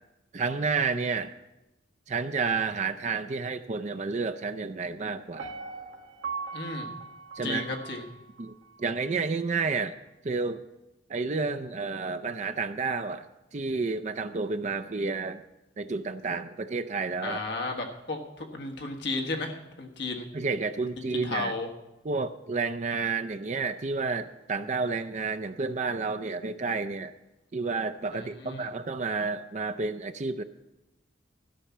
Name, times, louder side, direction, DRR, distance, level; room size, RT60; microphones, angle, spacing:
voice 1, 0.3-1.3 2.1-5.5 7.4-7.7 8.4-10.0 10.2-10.6 11.1-13.3 13.5-15.4 15.8-17.4 20.3-21.5 22.0-27.1 27.5-30.4, right 4 dB, 40° right, 9 dB, 0.5 m, -30 dB
Piano, 5.4-8.5 8.9-9.0, right 5 dB, 80° right, 1.2 m, -39 dB
voice 2, 6.5-6.9 7.4-8.0 17.2-20.3 21.1-21.7 28.1-28.7, left 3 dB, 60° left, 2 dB, 1.5 m, -34 dB
13.0 x 5.7 x 7.2 m, 0.96 s
head